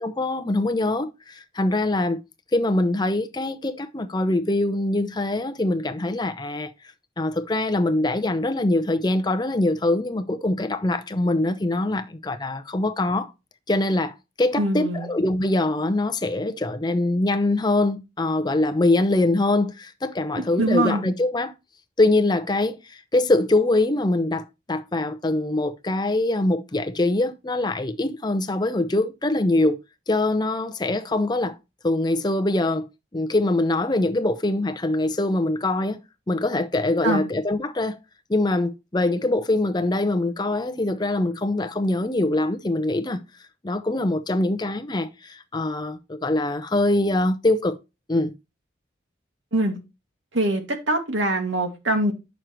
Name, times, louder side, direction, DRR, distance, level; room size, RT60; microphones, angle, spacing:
voice 1, 0.0-2.2 2.5-6.7 7.2-13.3 13.7-21.5 22.0-29.8 30.1-31.6 31.8-32.9 33.1-36.0 36.3-38.0 38.3-43.2 43.6-47.8 48.1-48.3, left 2 dB, 20° left, 0.7 m, -23 dB
voice 2, 14.6-15.1 20.4-21.0 37.0-37.2 49.5-49.8 50.3-52.1, right 1 dB, 80° right, 2.2 m, -23 dB
9.0 x 6.4 x 3.1 m
head